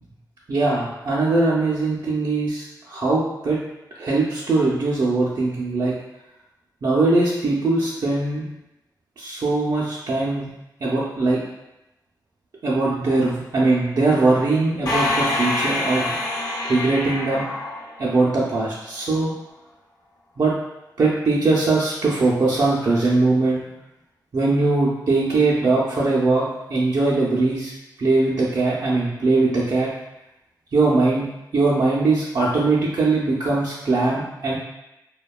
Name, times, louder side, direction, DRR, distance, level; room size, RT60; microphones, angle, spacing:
voice 1, 0.5-3.6 4.0-5.9 6.8-8.5 9.2-10.5 10.8-11.4 12.6-16.2 16.6-17.4 18.0-19.3 20.4-20.5 21.0-23.6 24.3-27.7 28.0-29.9 30.7-31.3 31.5-34.6, right 3 dB, 55° right, -7 dB, 0.5 m, -21 dB
sound 1, 14.9-18.5, left 2 dB, 55° left, 0.9 m, -26 dB
2.7 x 2.2 x 2.3 m, 0.91 s
wide cardioid pair, 90°, 8 cm